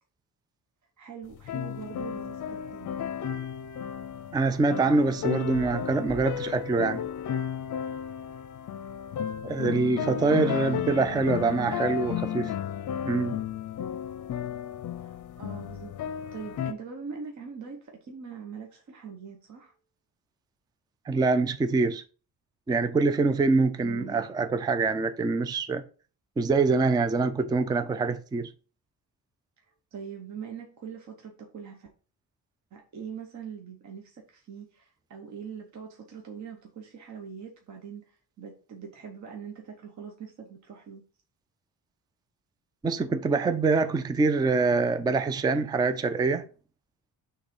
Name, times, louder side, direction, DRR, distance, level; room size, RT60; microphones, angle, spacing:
voice 1, 1.0-3.0 10.0-12.5 15.0-19.7 23.8-24.3 29.6-29.7 29.9-31.9 32.7-41.0, right 6 dB, 45° right, 1.1 m, -42 dB
sound 1, 1.3-16.7, left 9 dB, 50° left, 0.6 m, -33 dB
voice 2, 4.3-7.0 9.4-12.5 13.0-13.4 21.1-22.0 22.7-25.8 26.4-28.5 42.8-46.5, right 4 dB, 10° right, 0.3 m, -25 dB
6.3 x 3.4 x 5.2 m
cardioid pair, 155°, 40 cm